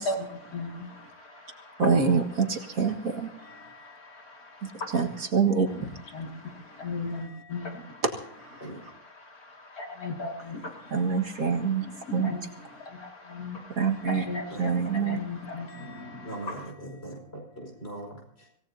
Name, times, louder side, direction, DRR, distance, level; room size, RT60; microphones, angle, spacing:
voice 1, 0.0-1.9 2.9-5.3 5.7-8.0 8.6-16.7, left 3 dB, 70° left, 1 dB, 2.9 m, -38 dB
voice 2, 1.8-3.3 4.9-5.7 8.0-8.1 10.9-11.9 12.1-12.3 13.8-14.2 14.6-15.2, right 5 dB, 65° right, 3 dB, 2.2 m, -25 dB
voice 3, 3.4-4.2 7.1-7.7 8.6-8.8 13.9-14.1 14.5-15.1 15.7-18.2, right 1 dB, 40° left, 0 dB, 5.5 m, -43 dB
25.5 x 17.5 x 2.8 m, 0.70 s
omnidirectional pair, 1.6 m